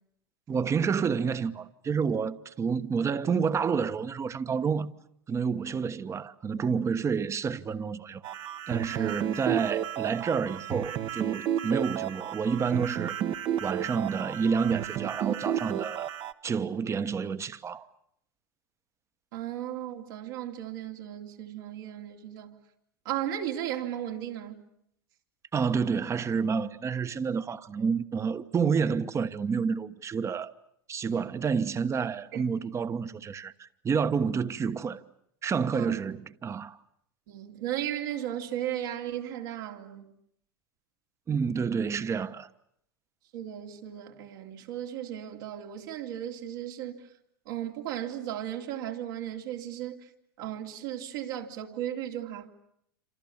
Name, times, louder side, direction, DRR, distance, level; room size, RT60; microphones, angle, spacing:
voice 1, 0.5-4.9 5.3-8.2 8.7-13.2 13.6-16.1 16.4-17.9 25.5-30.5 30.9-35.0 35.4-36.8 41.3-42.5, right 6 dB, 25° right, 1.2 m, -29 dB
sound 1, 8.2-16.3, right 10 dB, 45° right, 1.3 m, -32 dB
voice 2, 8.9-9.4 19.3-22.6 23.0-24.6 32.3-32.4 35.7-36.0 37.3-40.0 43.3-47.0 47.5-50.1 50.4-52.5, right 11 dB, 70° right, 3.2 m, -35 dB
28.0 x 27.0 x 7.3 m
hypercardioid pair, 105°, 12 cm